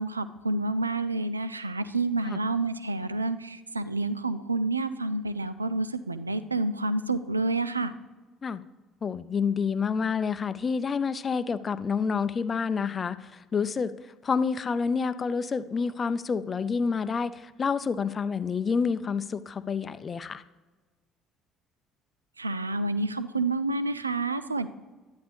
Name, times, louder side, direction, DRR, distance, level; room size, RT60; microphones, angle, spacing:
voice 1, 0.0-7.9 22.4-24.7, right 2 dB, 85° right, 14 dB, 0.3 m, -29 dB
voice 2, 9.0-13.9 14.2-20.4, left 5 dB, 35° left, 14 dB, 0.5 m, -28 dB
12.0 x 10.0 x 3.3 m, 1.3 s
figure-of-eight pair, 55°, 0 cm